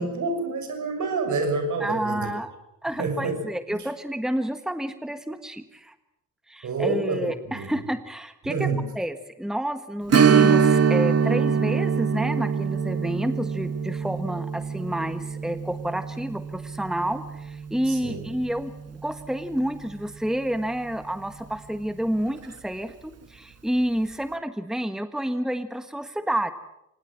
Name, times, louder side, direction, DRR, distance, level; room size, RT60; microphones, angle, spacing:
voice 1, 0.0-2.3 3.0-3.3 6.6-7.7 8.5-8.9 17.9-18.2, right 3 dB, 65° right, 7 dB, 6.5 m, -28 dB
voice 2, 1.8-2.5 2.8-5.9 6.5-8.7 8.9-26.5, right 1 dB, ahead, 9 dB, 1.5 m, -29 dB
Strum, 10.1-19.3 19.6-19.7 22.3-22.4 22.9-23.0, right 6 dB, 50° right, 1.7 m, -24 dB
25.5 x 19.5 x 7.5 m, 0.86 s
supercardioid pair, 65°, 32 cm